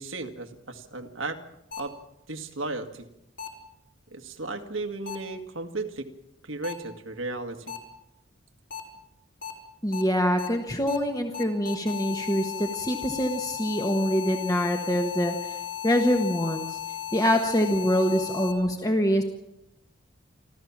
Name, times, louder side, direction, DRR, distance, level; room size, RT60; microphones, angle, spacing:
voice 1, 0.0-1.4 1.8-1.9 2.3-3.1 4.1-6.1 6.4-7.8, right 2 dB, 80° right, 6 dB, 2.0 m, -35 dB
sound 1, 1.7-1.8 3.4-3.5 5.1-5.2 6.6-6.7 7.7-7.8 8.7-8.8 9.4-9.5 9.9-10.0 10.4-10.5 10.9-11.0 11.3-18.5, left 11 dB, 60° left, 5.1 m, -35 dB
voice 2, 9.8-16.8 17.1-19.2, equal, 15° left, 4 dB, 1.3 m, -25 dB
28.5 x 13.5 x 7.3 m, 0.84 s
head